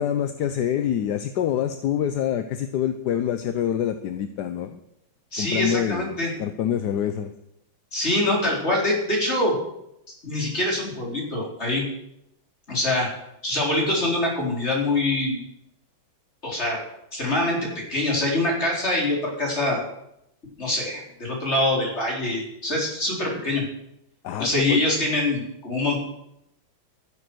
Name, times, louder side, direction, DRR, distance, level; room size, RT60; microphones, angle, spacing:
voice 1, 0.0-4.8 5.4-7.3 24.2-24.8, left 9 dB, 65° left, 9 dB, 1.2 m, -26 dB
voice 2, 5.3-6.3 7.9-9.6 10.2-11.8 12.7-13.1 13.4-15.4 16.4-16.8 17.1-19.8 20.6-23.6 24.4-26.0, left 1 dB, 30° left, -2 dB, 4.2 m, -24 dB
13.0 x 11.0 x 6.2 m, 0.82 s
omnidirectional pair, 2.1 m